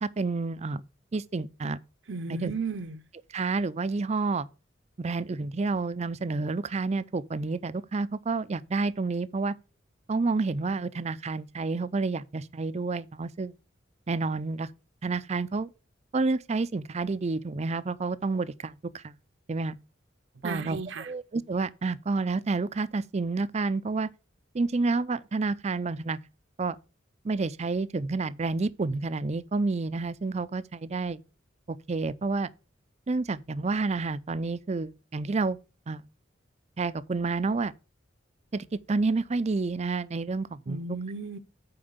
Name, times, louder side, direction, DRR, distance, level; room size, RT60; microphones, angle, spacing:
voice 1, 0.0-0.8 1.1-1.8 2.3-2.5 3.3-4.5 5.0-9.6 10.1-13.5 14.1-14.7 15.0-15.7 16.1-19.1 19.5-19.8 20.4-24.1 24.5-26.2 26.6-26.8 27.2-31.2 31.7-32.5 33.1-35.6 35.9-36.0 36.8-37.7 38.5-40.8, right 3 dB, 35° right, 0.5 m, -29 dB
voice 2, 2.1-3.0 20.4-21.1 40.7-41.4, right 4 dB, 65° right, 0.8 m, -34 dB
8.7 x 4.5 x 6.6 m
head